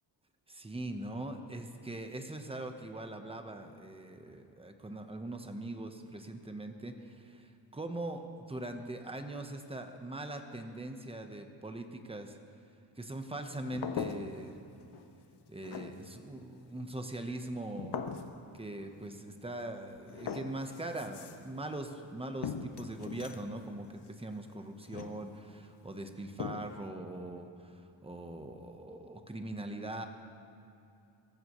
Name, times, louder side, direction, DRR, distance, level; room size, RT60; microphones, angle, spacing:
voice 1, 0.5-12.4 13.0-14.5 15.5-18.1 18.5-30.1, right 1 dB, 10° right, 5 dB, 1.1 m, -41 dB
sound 1, 13.7-14.6 14.9-15.4 15.6-16.3 17.8-18.5 19.6-19.7 20.0-21.6 22.4-23.5 24.8-25.6 26.4-26.9, left 6 dB, 60° left, 1.0 m, -40 dB
24.5 x 14.0 x 3.2 m, 2.7 s
cardioid pair, 115°, 45 cm